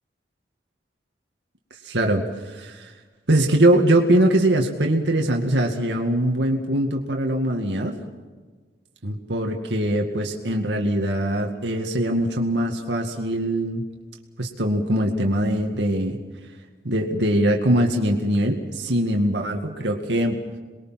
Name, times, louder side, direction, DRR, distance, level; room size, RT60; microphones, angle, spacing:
voice 1, 1.8-2.9 3.3-8.0 9.0-13.9 14.4-16.2 16.8-20.4, right 1 dB, 85° right, 1 dB, 2.2 m, -22 dB
28.0 x 21.5 x 5.9 m, 1.4 s
head